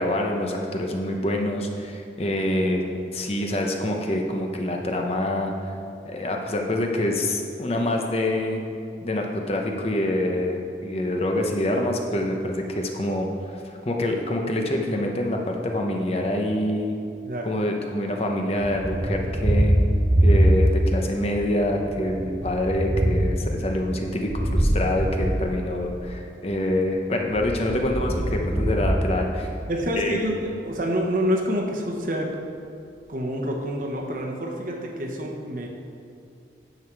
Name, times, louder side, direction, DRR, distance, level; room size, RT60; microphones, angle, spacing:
voice 1, 0.0-2.8 3.1-5.7 6.0-8.6 9.0-17.0 17.4-19.7 20.2-29.5 30.0-30.2, left 1 dB, 35° left, 2 dB, 0.8 m, -26 dB
Thunder, 18.6-21.0 21.4-26.2 27.2-29.9, right 1 dB, 15° right, 0.5 m, -23 dB
voice 2, 29.7-32.4 33.1-35.7, equal, 45° right, 1 dB, 1.1 m, -27 dB
9.9 x 7.1 x 4.6 m, 2.5 s
head